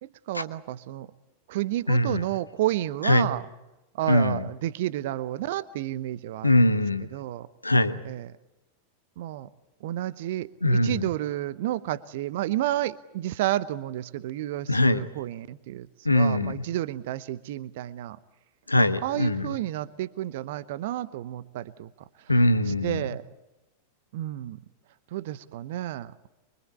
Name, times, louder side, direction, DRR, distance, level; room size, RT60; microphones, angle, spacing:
voice 1, 0.0-1.1 1.5-3.4 3.9-6.8 7.1-7.5 8.0-8.3 9.2-9.5 9.8-18.2 19.0-21.9 22.2-22.3 22.7-23.2 24.1-24.6 25.1-26.3, right 14 dB, 55° right, 16 dB, 0.8 m, -31 dB
voice 2, 1.9-2.2 3.0-3.3 4.1-4.4 6.4-7.1 7.6-8.0 10.6-11.1 14.7-15.1 16.0-16.5 18.7-19.5 22.3-23.0, left 1 dB, 85° left, 12 dB, 1.1 m, -22 dB
24.5 x 24.0 x 8.5 m, 1.0 s
figure-of-eight pair, 90°, 0 cm